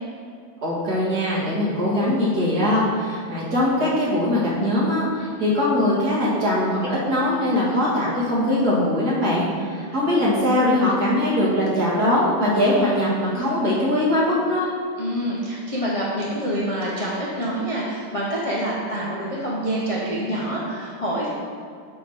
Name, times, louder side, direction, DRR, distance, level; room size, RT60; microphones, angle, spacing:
voice 1, 0.6-14.7, left 1 dB, 55° right, -6 dB, 2.2 m, -21 dB
voice 2, 15.0-21.3, right 1 dB, 25° left, -6 dB, 0.7 m, -26 dB
7.4 x 3.8 x 6.1 m, 2.3 s
omnidirectional pair, 2.0 m